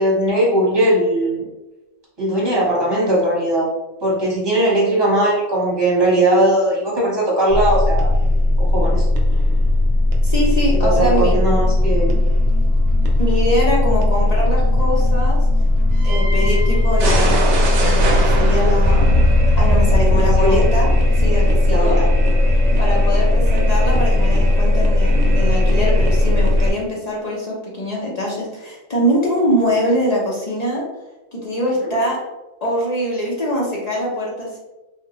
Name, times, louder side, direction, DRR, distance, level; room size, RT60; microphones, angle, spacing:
voice 1, 0.0-1.5 2.2-3.7 4.0-8.1 8.6-9.0 10.8-12.2 20.1-20.6 21.7-22.1, right 1 dB, 20° right, -5 dB, 0.9 m, -19 dB
sound 1, 7.5-26.7, left 1 dB, 60° right, 0.7 m, -16 dB
voice 2, 10.2-11.4 13.2-15.4 16.0-22.0 22.8-30.8 31.3-32.2 32.6-34.6, equal, 45° left, -4 dB, 0.5 m, -23 dB
3.4 x 2.1 x 2.8 m, 1.0 s
omnidirectional pair, 1.4 m